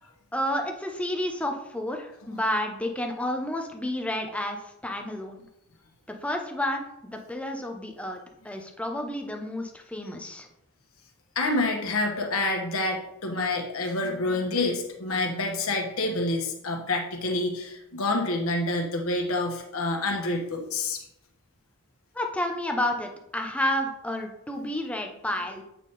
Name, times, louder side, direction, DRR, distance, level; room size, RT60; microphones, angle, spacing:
voice 1, 0.3-5.4 6.1-10.5 22.1-25.6, left 1 dB, 5° left, 3 dB, 0.7 m, -30 dB
voice 2, 11.3-21.0, left 2 dB, 85° left, 2 dB, 1.2 m, -27 dB
8.3 x 3.6 x 4.1 m, 0.83 s
head